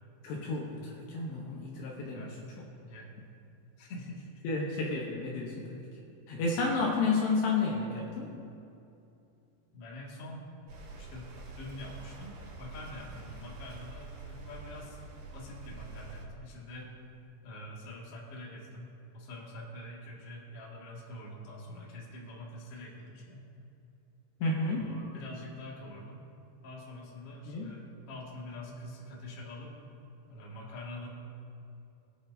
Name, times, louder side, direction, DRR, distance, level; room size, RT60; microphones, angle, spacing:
voice 1, 0.2-2.3 4.4-5.9 6.3-8.3 24.4-24.9 27.5-27.7, left 3 dB, 75° left, -2 dB, 2.8 m, -31 dB
voice 2, 3.8-4.7 9.7-10.5 11.0-15.0 15.3-16.9 17.4-18.9 19.1-23.5 24.8-26.2 26.6-29.7 30.3-31.1, left 1 dB, 45° left, -5 dB, 2.1 m, -45 dB
sound 1, 10.7-16.2, right 3 dB, 80° right, 4.5 m, -46 dB
21.5 x 9.3 x 2.7 m, 2.7 s
omnidirectional pair, 5.4 m